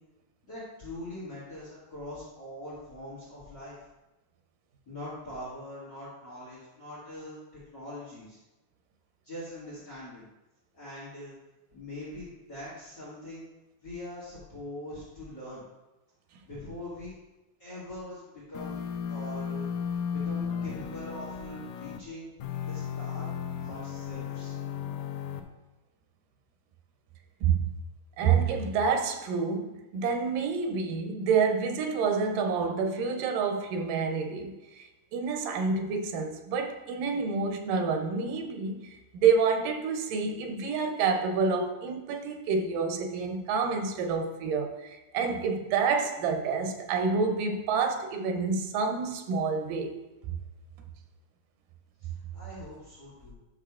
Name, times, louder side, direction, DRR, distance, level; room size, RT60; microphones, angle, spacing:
voice 1, 0.5-3.8 4.9-8.4 9.2-10.2 10.7-11.3 11.7-13.4 13.8-15.6 16.5-17.1 17.6-18.8 19.1-19.7 20.1-22.3 22.7-23.3 23.6-24.5 52.0-53.4, left 1 dB, 35° left, -8 dB, 2.3 m, -42 dB
sound 1, 18.5-22.0 22.4-25.4, left 7 dB, 80° left, 2.0 m, -35 dB
voice 2, 28.2-50.0 50.3-50.4, right 5 dB, 90° right, 5 dB, 2.4 m, -28 dB
11.0 x 6.5 x 2.4 m, 1.0 s
omnidirectional pair, 3.7 m